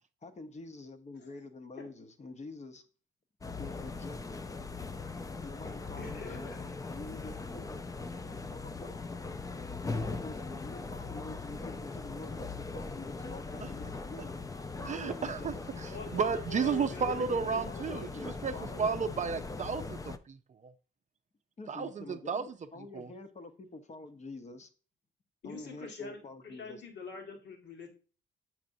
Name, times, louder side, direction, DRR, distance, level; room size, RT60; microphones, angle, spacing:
voice 1, 0.2-2.8 3.6-4.4 5.4-7.8 8.5-8.9 9.9-14.3 14.7-15.5 17.7-18.9 21.6-24.7 25.4-26.8, left 2 dB, 35° left, 8 dB, 1.0 m, -47 dB
sound 1, 3.4-20.2, left 3 dB, 15° left, 0.4 m, -40 dB
voice 2, 6.0-6.6 15.9-18.1 25.4-27.9, left 4 dB, 60° left, 1 dB, 1.8 m, -44 dB
voice 3, 14.8-20.7 21.7-23.1, right 6 dB, 35° right, 8 dB, 0.5 m, -33 dB
7.3 x 6.0 x 2.6 m, 0.38 s
cardioid pair, 90°, 20 cm